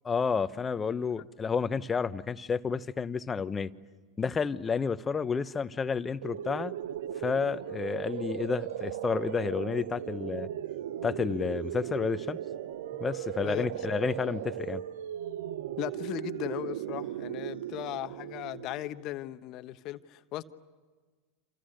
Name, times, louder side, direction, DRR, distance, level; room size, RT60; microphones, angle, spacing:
voice 1, 0.0-3.7 4.2-6.7 7.2-10.5 11.0-12.4 13.0-14.8, left 5 dB, 20° left, 1.0 m, -30 dB
sound 1, 6.2-19.0, right 11 dB, 70° right, 0.7 m, -37 dB
voice 2, 15.8-20.4, left 14 dB, 50° left, 1.1 m, -37 dB
28.5 x 27.5 x 6.7 m
hypercardioid pair, 90°, 0 cm